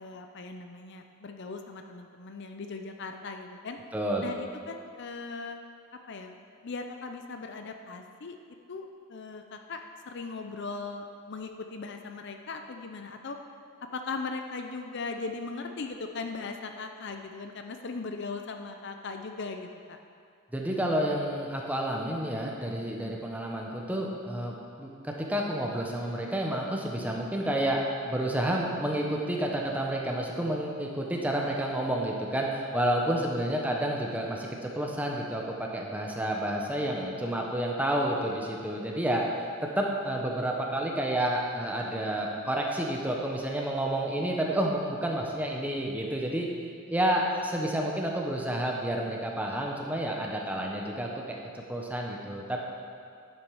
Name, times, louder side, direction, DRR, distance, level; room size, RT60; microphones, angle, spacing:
voice 1, 0.0-3.8 4.2-5.6 6.1-6.4 6.6-8.4 8.7-13.4 13.9-20.0, left 4 dB, 55° left, 5 dB, 0.5 m, -39 dB
voice 2, 3.9-4.2 20.5-39.2 39.6-46.5 46.9-52.6, right 1 dB, 5° right, -1 dB, 0.9 m, -30 dB
10.5 x 7.4 x 4.8 m, 2.3 s
head